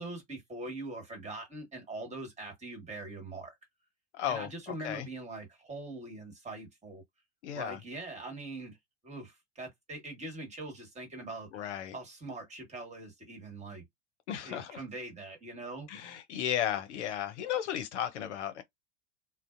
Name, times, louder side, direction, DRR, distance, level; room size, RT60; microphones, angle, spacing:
voice 1, 0.0-3.6 4.3-7.0 7.5-8.8 9.0-11.5 11.9-13.8 14.4-15.9, right 2 dB, 20° right, 1.4 m, -42 dB
voice 2, 4.1-5.1 7.4-7.8 11.5-12.0 14.3-14.8 15.9-18.6, left 10 dB, 65° left, 0.7 m, -34 dB
2.5 x 2.1 x 2.5 m
figure-of-eight pair, 85°, 37 cm